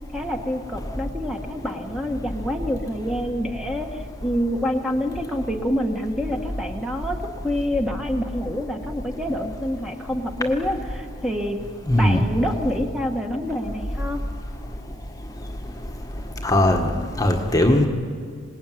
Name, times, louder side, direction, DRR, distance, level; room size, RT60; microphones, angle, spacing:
voice 1, 0.1-7.2 7.4-11.6 12.0-14.2, equal, ahead, 2 dB, 1.6 m, -27 dB
voice 2, 11.9-12.2 16.4-17.9, left 1 dB, 15° left, 3 dB, 1.5 m, -19 dB
26.5 x 19.5 x 9.3 m, 2.1 s
head